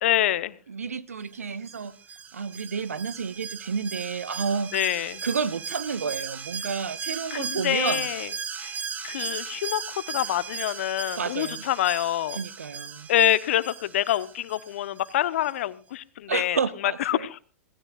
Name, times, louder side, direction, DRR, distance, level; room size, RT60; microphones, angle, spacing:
voice 1, 0.0-0.5 4.7-5.2 7.3-8.3 8.6-8.8 9.0-12.4 13.1-16.6 17.1-17.4, left 13 dB, 60° left, 16 dB, 0.9 m, -26 dB
voice 2, 0.7-1.9 2.3-4.7 5.0-8.1 11.1-11.6 12.3-13.1 16.3-17.3, right 5 dB, 80° right, 16 dB, 0.9 m, -30 dB
Alarm, 1.7-15.1 15.5-15.6, right 6 dB, 20° right, 1.5 m, -37 dB
26.5 x 16.5 x 2.4 m, 0.35 s
hypercardioid pair, 105°, 8 cm